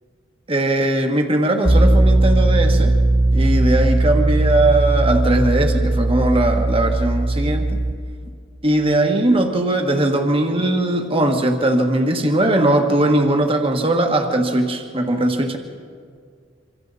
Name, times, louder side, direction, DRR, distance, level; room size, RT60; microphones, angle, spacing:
voice 1, 0.5-3.0 3.3-7.8 8.6-15.6, right 1 dB, 30° right, 3 dB, 1.5 m, -19 dB
Piano, 1.7-7.9, right 2 dB, 10° right, 0.6 m, -17 dB
27.0 x 25.5 x 4.1 m, 2.1 s
head